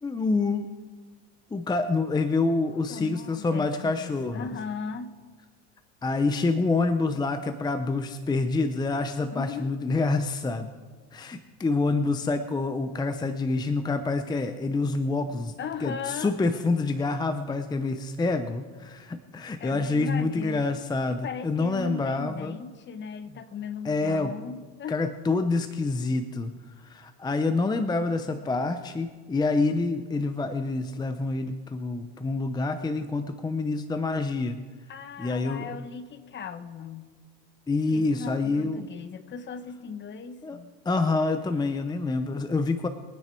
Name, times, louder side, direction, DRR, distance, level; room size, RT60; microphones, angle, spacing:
voice 1, 0.0-0.7 1.5-4.6 6.0-10.7 11.1-22.6 23.8-24.3 24.9-34.6 35.2-35.8 37.7-38.9 40.4-40.6 40.8-42.9, left 3 dB, 10° left, 9 dB, 0.6 m, -27 dB
voice 2, 2.7-5.1 9.3-9.7 15.6-16.4 19.6-20.7 21.1-25.0 34.9-37.1 37.9-40.7, left 6 dB, 30° left, 11 dB, 1.1 m, -37 dB
23.0 x 9.6 x 4.5 m, 1.5 s
supercardioid pair, 115°, 35 cm